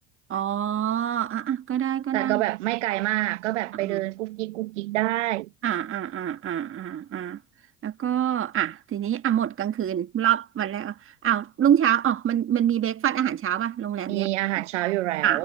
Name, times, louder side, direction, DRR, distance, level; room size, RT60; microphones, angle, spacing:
voice 1, 0.3-2.4 3.8-4.0 5.6-7.4 7.8-14.3 14.6-14.7 15.2-15.4, right 10 dB, 35° right, 1.6 m, -26 dB
voice 2, 2.1-5.5 14.1-15.4, right 18 dB, 80° right, 1.9 m, -27 dB
hypercardioid pair, 80°, 36 cm